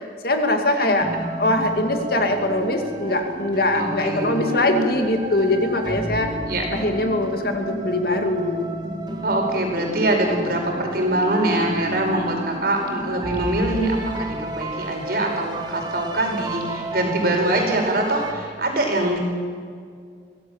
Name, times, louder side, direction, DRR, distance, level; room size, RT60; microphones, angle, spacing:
voice 1, 0.2-1.1 1.4-6.3 6.7-8.7, left 1 dB, 55° left, 5 dB, 2.3 m, -22 dB
sound 1, 1.0-18.3, right 1 dB, 25° right, 1.9 m, -32 dB
voice 2, 3.7-4.5 6.4-6.6 9.2-19.2, right 1 dB, 55° right, 2 dB, 5.1 m, -23 dB
23.5 x 17.0 x 7.3 m, 2.1 s
head